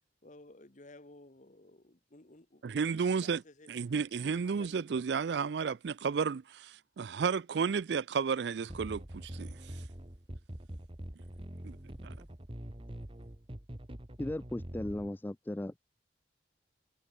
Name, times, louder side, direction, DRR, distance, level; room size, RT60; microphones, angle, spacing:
voice 1, 0.2-3.7 4.1-5.0 7.6-7.8, left 2 dB, 40° left, 1.5 m, -55 dB
voice 2, 2.6-3.4 3.7-6.4 7.0-9.0 9.4-9.5 11.6-11.8, right 6 dB, 65° right, 0.4 m, -32 dB
sound 1, 8.7-15.1, right 1 dB, 30° right, 1.6 m, -44 dB
voice 3, 14.2-15.8, left 1 dB, 10° left, 0.3 m, -37 dB
head